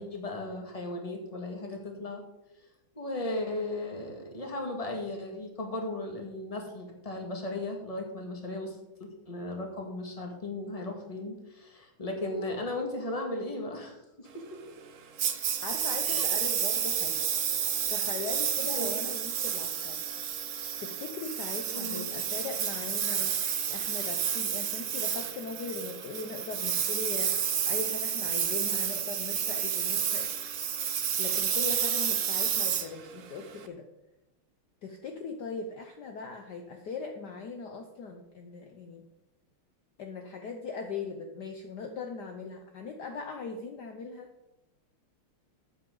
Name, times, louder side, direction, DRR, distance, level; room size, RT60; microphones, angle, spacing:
voice 1, 0.0-2.2 2.9-14.4 16.0-16.3 18.6-19.0 21.7-22.1, left 2 dB, 15° left, 2 dB, 1.7 m, -36 dB
Engine, 15.2-33.6, right 8 dB, 60° right, 0.8 m, -30 dB
voice 2, 15.6-17.2 17.9-20.0 20.8-23.3 23.7-30.2 31.2-33.8 34.8-39.0 40.0-44.3, left 4 dB, 60° left, 4 dB, 1.3 m, -39 dB
13.5 x 8.5 x 3.8 m, 0.96 s
omnidirectional pair, 2.3 m